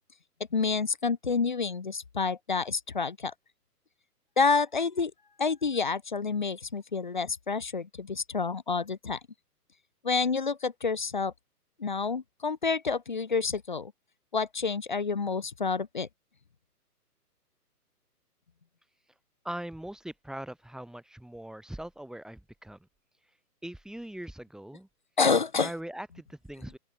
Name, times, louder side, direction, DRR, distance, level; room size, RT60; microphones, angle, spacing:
voice 1, 0.5-3.3 4.4-5.1 5.4-9.2 10.0-11.3 11.8-13.9 14.3-16.1 25.2-25.7, left 5 dB, 35° left, 0.4 m, -28 dB
voice 2, 19.4-22.8 23.6-24.9 25.6-26.8, right 1 dB, ahead, 4.7 m, -41 dB
open air
figure-of-eight pair, 140°, 47 cm